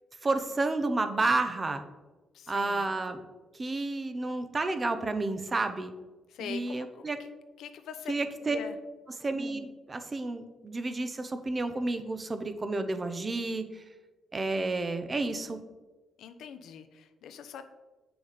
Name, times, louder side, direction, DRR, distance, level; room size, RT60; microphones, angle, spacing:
voice 1, 0.2-1.8 2.5-3.2 3.5-5.9 6.4-7.2 8.1-8.6 9.2-13.8 14.3-15.6, right 2 dB, 25° right, 8 dB, 0.8 m, -31 dB
voice 2, 2.3-2.9 6.3-7.3 7.6-8.1 8.4-8.7 16.2-17.6, left 7 dB, 80° left, 9 dB, 0.8 m, -43 dB
8.3 x 6.1 x 5.0 m, 1.2 s
cardioid pair, 115°, 0 cm